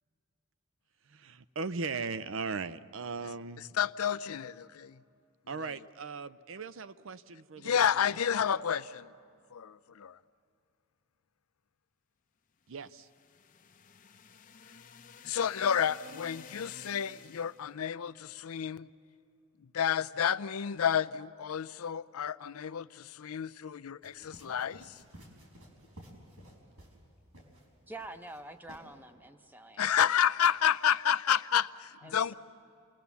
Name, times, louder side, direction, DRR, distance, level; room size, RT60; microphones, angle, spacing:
voice 1, 1.1-3.7 5.5-8.1 12.7-13.1, right 4 dB, 60° right, 0.6 m, -38 dB
voice 2, 3.6-5.0 5.6-5.7 7.6-9.1 9.5-10.2 15.2-18.9 19.7-25.0 29.8-32.3, left 8 dB, 80° left, 0.5 m, -30 dB
sound 1, 12.8-17.7, left 6 dB, 35° left, 0.7 m, -53 dB
sound 2, 24.0-27.0 27.3-27.6 28.0-28.4 28.7-28.8, equal, 80° right, 4.9 m, -53 dB
voice 3, 27.9-29.9 32.0-32.3, right 2 dB, 10° right, 0.8 m, -47 dB
29.0 x 19.5 x 7.1 m
head